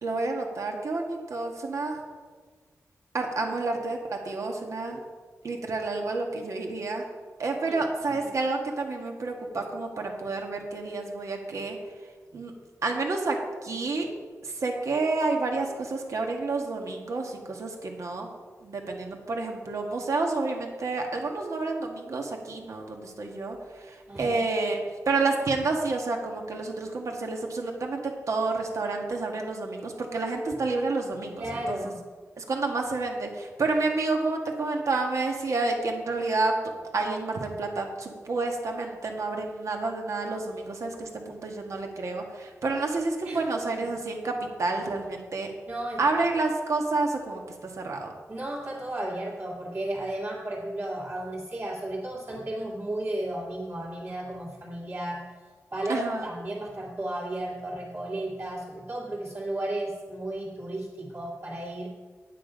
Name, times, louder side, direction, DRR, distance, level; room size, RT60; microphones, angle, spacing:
voice 1, 0.0-2.0 3.1-5.0 5.4-7.1 7.4-11.8 12.3-12.5 12.8-14.1 14.4-18.3 18.6-24.8 25.1-31.8 32.4-36.6 36.9-45.5 46.0-48.1 55.9-56.3, right 3 dB, 65° right, 2 dB, 1.6 m, -29 dB
voice 2, 7.7-8.4 24.1-24.4 31.4-32.0 43.2-43.4 43.7-43.8 45.7-46.2 48.3-55.3 55.7-61.9, right 1 dB, 40° right, -8 dB, 2.3 m, -34 dB
9.0 x 8.7 x 5.1 m, 1.5 s
wide cardioid pair, 125°, 6 cm